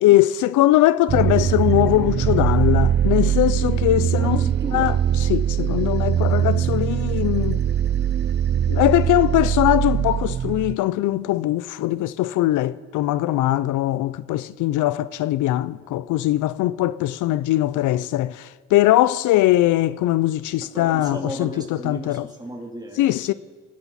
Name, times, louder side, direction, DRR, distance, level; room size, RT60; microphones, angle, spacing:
voice 1, 0.0-4.4 4.7-4.9 5.3-7.6 8.7-21.5 21.8-22.3 23.0-23.3, left 15 dB, 80° left, 0.5 m, -20 dB
sound 1, 1.1-10.8, right 10 dB, 35° right, 0.4 m, -21 dB
voice 2, 4.2-4.9 20.7-23.3, right 1 dB, 15° right, 3.0 m, -35 dB
25.5 x 10.5 x 4.2 m
cardioid pair, 90°, 30 cm